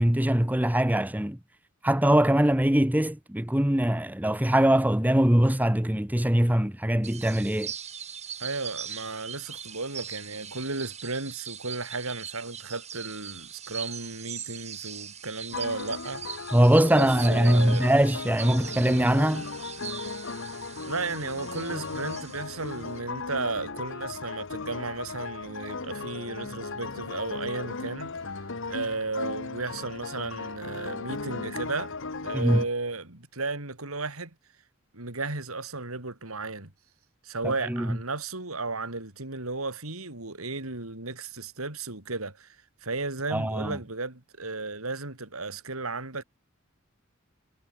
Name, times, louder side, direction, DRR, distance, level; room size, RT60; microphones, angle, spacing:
voice 1, 0.0-1.4 1.8-7.7 16.5-19.5 32.3-32.6 37.7-38.0 43.3-43.8, right 1 dB, 10° right, 1.0 m, -22 dB
sound 1, 7.0-23.0, right 8 dB, 30° right, 3.8 m, -41 dB
voice 2, 8.4-16.2 16.9-17.9 20.9-32.0 32.2-34.3 34.9-36.7 37.2-46.2, right 3 dB, 90° right, 4.1 m, -34 dB
sound 2, 15.5-32.7, left 4 dB, 65° left, 1.5 m, -37 dB
head